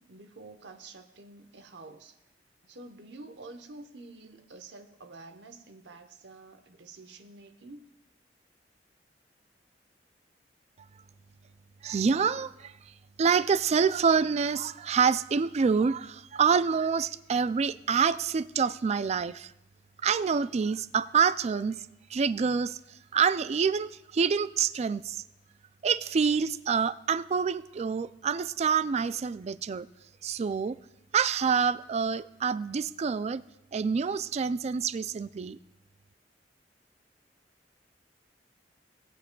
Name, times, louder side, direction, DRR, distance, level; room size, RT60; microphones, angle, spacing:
voice 1, 0.0-2.2 2.6-7.9, right 3 dB, 75° right, 7 dB, 1.0 m, -48 dB
voice 2, 11.8-12.7 13.2-19.5 20.0-21.8 22.1-22.8 23.1-25.2 25.8-29.9 30.2-30.8 31.1-33.4 33.7-35.6, right 6 dB, 40° right, 15 dB, 0.3 m, -27 dB
18.5 x 8.2 x 2.3 m, 0.95 s
head